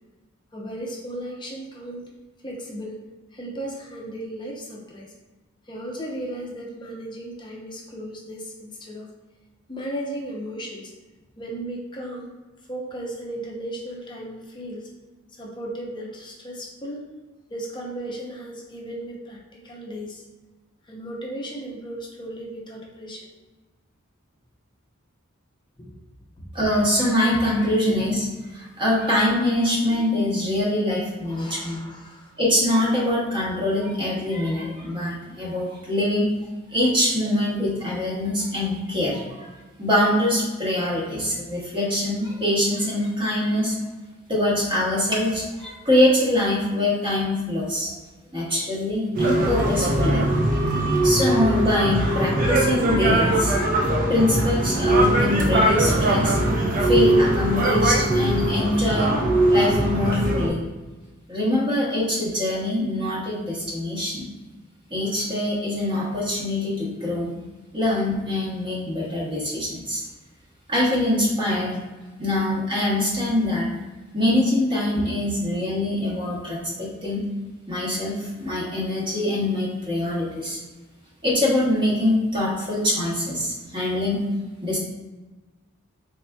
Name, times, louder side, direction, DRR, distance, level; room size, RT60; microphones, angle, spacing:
voice 1, 0.5-2.0 2.4-3.0 3.3-5.1 5.7-9.1 9.7-10.9 11.4-12.3 12.7-14.9 15.3-17.1 17.5-20.2 20.8-23.3 25.8-26.0 26.4-26.5 27.9-28.0 31.2-32.4, right 1 dB, 20° left, -2 dB, 0.6 m, -35 dB
voice 2, 26.5-28.2 28.5-31.8 32.4-36.3 36.7-39.5 39.8-43.8 44.3-47.9 48.3-50.3 51.0-53.5 54.1-56.5 56.7-59.1 59.5-60.6 61.3-64.3 64.9-67.3 67.7-70.0 70.7-71.8 72.2-73.7 74.1-77.2 77.7-80.6 81.2-84.2 84.6-84.8, left 1 dB, 25° right, -6 dB, 1.0 m, -24 dB
sound 1, 49.1-60.5, right 1 dB, 40° right, 0.6 m, -21 dB
4.0 x 3.5 x 2.2 m, 1.2 s
head